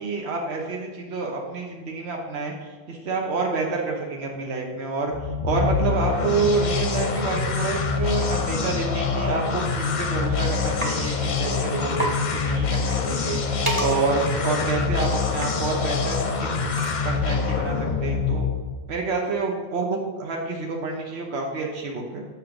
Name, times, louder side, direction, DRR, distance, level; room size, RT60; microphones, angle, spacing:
voice 1, 0.0-5.1 5.4-16.7 17.0-18.5 18.9-22.2, right 4 dB, 80° right, 1 dB, 1.1 m, -28 dB
sound 1, 5.1-18.9, left 5 dB, 50° left, 0.7 m, -25 dB
sound 2, 8.2-8.4 9.5-9.6 10.0-10.3 10.8-11.0 11.3-11.4 11.7-11.8 11.9-12.2 12.6-17.3, right 1 dB, 30° right, 1.0 m, -32 dB
7.0 x 3.2 x 5.9 m, 1.3 s
omnidirectional pair, 1.1 m